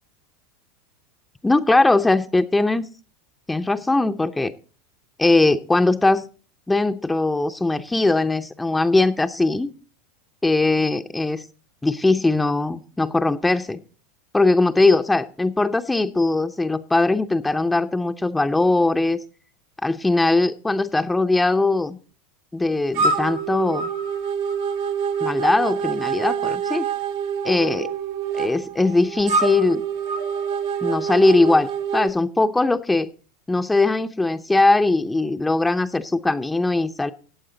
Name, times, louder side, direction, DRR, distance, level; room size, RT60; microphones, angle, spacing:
voice 1, 1.4-2.9 3.5-4.5 5.2-6.3 6.7-9.7 10.4-11.4 11.8-13.8 14.3-19.2 19.8-22.0 22.5-23.9 25.2-26.9 27.4-27.9 28.3-29.8 30.8-33.1 33.5-37.1, left 2 dB, 10° left, 8 dB, 0.6 m, -20 dB
sound 1, 22.9-32.1, right 6 dB, 65° right, 1.2 m, -26 dB
14.5 x 8.6 x 3.9 m, 0.39 s
hypercardioid pair, 95°, 0 cm